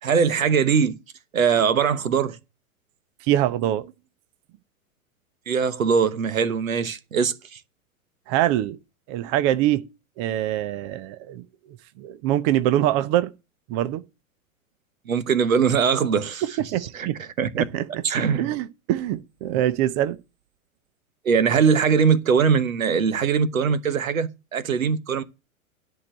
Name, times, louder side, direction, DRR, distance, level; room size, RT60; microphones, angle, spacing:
voice 1, 0.0-1.0 1.3-2.4 5.5-7.6 15.1-16.6 16.9-17.6 18.0-18.5 21.2-25.2, right 6 dB, 70° right, 1.2 m, -21 dB
voice 2, 3.3-3.9 8.3-8.8 9.1-9.8 10.2-11.4 12.0-13.3 13.7-14.0 16.4-17.2 17.7-17.9 18.4-20.2, right 12 dB, 20° right, 0.4 m, -24 dB
11.0 x 4.6 x 7.6 m
figure-of-eight pair, 100°, 43 cm